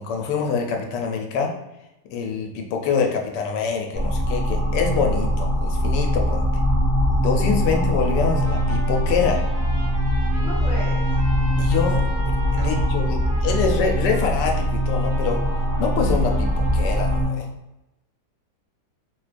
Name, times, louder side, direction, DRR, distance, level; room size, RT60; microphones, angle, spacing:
voice 1, 0.0-1.5 2.1-6.4 7.2-9.4 11.6-12.0 12.5-15.4 15.8-17.5, left 5 dB, 85° left, 2 dB, 1.2 m, -25 dB
sound 1, 3.9-17.3, equal, 15° right, 0.4 m, -22 dB
Trumpet, 8.2-17.3, equal, 70° right, 1.3 m, -39 dB
voice 2, 10.3-11.2 12.5-13.4, equal, 45° right, -7 dB, 1.1 m, -37 dB
4.4 x 2.2 x 2.5 m, 0.93 s
omnidirectional pair, 1.8 m